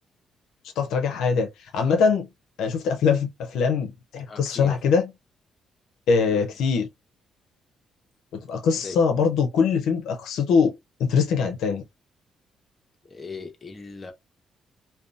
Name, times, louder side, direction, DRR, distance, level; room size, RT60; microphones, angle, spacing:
voice 1, 0.8-1.5 1.7-2.3 2.6-5.1 6.1-6.9 8.3-10.7 11.0-11.8, left 5 dB, 85° left, 0.5 m, -22 dB
voice 2, 4.3-4.8 6.3-6.4 8.8-9.0 13.1-14.1, left 4 dB, 30° left, 0.6 m, -38 dB
2.6 x 2.1 x 2.4 m
cardioid pair, 90°, 0 cm